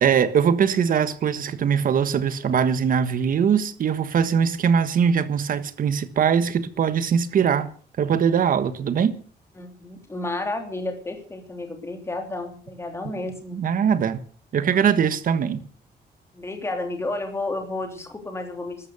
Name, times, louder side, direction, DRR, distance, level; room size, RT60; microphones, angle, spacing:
voice 1, 0.0-7.7 8.0-9.1 13.5-14.2 14.5-15.6, right 7 dB, 50° right, 1.4 m, -21 dB
voice 2, 9.6-13.6 16.3-18.9, left 2 dB, 15° left, 3.1 m, -31 dB
14.0 x 13.0 x 6.8 m
wide cardioid pair, 175°, 18 cm